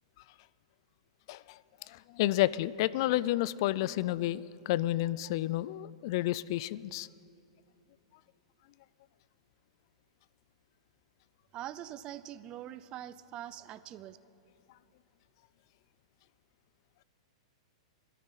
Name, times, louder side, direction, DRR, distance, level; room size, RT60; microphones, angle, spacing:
voice 1, 1.9-7.1, left 15 dB, 50° left, 19 dB, 0.4 m, -30 dB
voice 2, 11.5-14.2, right 12 dB, 25° right, 14 dB, 0.4 m, -43 dB
21.5 x 13.5 x 4.1 m, 2.9 s
hypercardioid pair, 150°, 3 cm